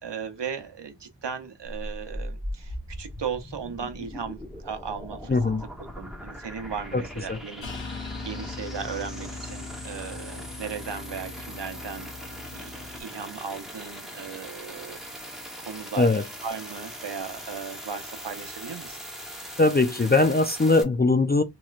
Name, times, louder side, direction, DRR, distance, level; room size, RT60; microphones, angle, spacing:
voice 1, 0.0-5.4 6.0-12.1 12.5-16.1 16.4-19.0, right 6 dB, 65° right, 0.7 m, -37 dB
sound 1, 1.7-20.8, equal, ahead, 0.9 m, -40 dB
voice 2, 5.3-5.6 6.9-7.0 7.3-7.4 16.0-16.2 19.6-21.4, left 3 dB, 25° left, 0.3 m, -21 dB
sound 2, 7.6-13.0, left 4 dB, 75° left, 0.7 m, -40 dB
3.0 x 2.9 x 2.4 m
wide cardioid pair, 45°, 46 cm